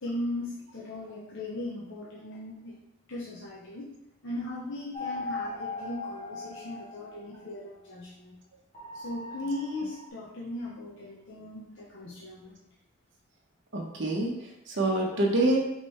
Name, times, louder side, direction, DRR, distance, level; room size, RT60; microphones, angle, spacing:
voice 1, 0.0-2.7 3.1-3.9 4.2-8.3 8.9-12.6, left 1 dB, 60° left, -6 dB, 0.8 m, -38 dB
sound 1, 4.9-7.5 8.7-10.1, left 2 dB, 30° left, 1.0 m, -38 dB
voice 2, 13.7-15.6, right 1 dB, 60° right, -1 dB, 1.0 m, -26 dB
5.3 x 3.2 x 3.2 m, 0.85 s
head